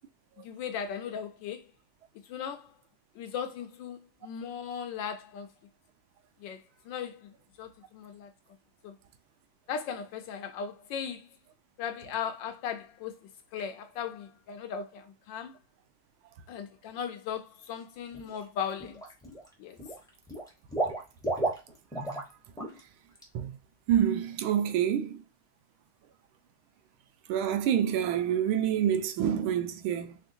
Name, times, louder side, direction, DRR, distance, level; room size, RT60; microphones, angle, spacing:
voice 1, 0.4-1.6 2.3-2.7 3.2-5.5 6.4-6.6 6.8-8.3 8.8-8.9 9.7-11.3 11.8-13.2 13.5-15.6 16.5-19.0 19.6-19.8, left 7 dB, 75° left, 1.2 m, -37 dB
Water / Liquid, 18.1-18.4 18.8-19.5 19.8-22.3 22.6-22.8 23.2-23.3, right 2 dB, 5° left, 0.5 m, -33 dB
voice 2, 23.9-25.2 27.3-30.2, right 9 dB, 85° right, 1.4 m, -27 dB
3.6 x 3.4 x 2.7 m
omnidirectional pair, 2.2 m